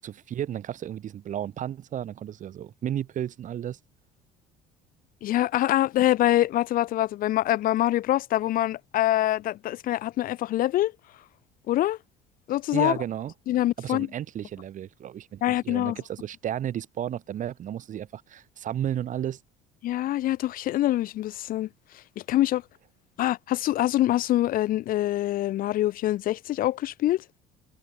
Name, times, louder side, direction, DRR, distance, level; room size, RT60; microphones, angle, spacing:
voice 1, 0.0-3.8 12.7-13.3 13.8-19.4, right 10 dB, 55° right, 4.5 m, -33 dB
voice 2, 5.2-10.9 11.7-12.0 12.5-13.0 13.5-14.1 15.4-16.0 19.8-21.7 22.2-22.6 23.2-27.2, left 14 dB, 60° left, 2.5 m, -25 dB
supercardioid pair, 75°, 16 cm